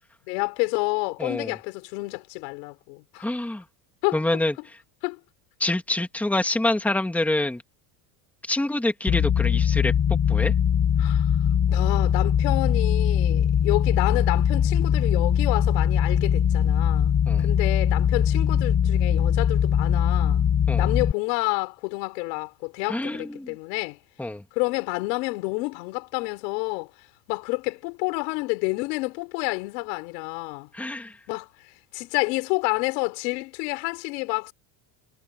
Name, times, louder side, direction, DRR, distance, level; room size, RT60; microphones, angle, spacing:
voice 1, 0.3-3.3 4.0-4.2 5.0-5.2 11.0-11.3 11.7-17.1 17.4-20.4 20.8-24.0 24.5-26.9 27.3-30.7 31.3-31.5 31.9-34.5, left 27 dB, 90° left, 5.2 m, -29 dB
voice 2, 1.2-1.6 3.2-3.6 4.1-4.5 5.6-7.6 8.5-9.9 10.3-10.5 17.3-17.5 20.7-20.9 22.9-23.5 24.2-24.4 30.7-31.2, left 2 dB, 5° left, 1.9 m, -26 dB
sound 1, 9.1-21.1, left 8 dB, 30° left, 3.2 m, -21 dB
cardioid pair, 160°, 48 cm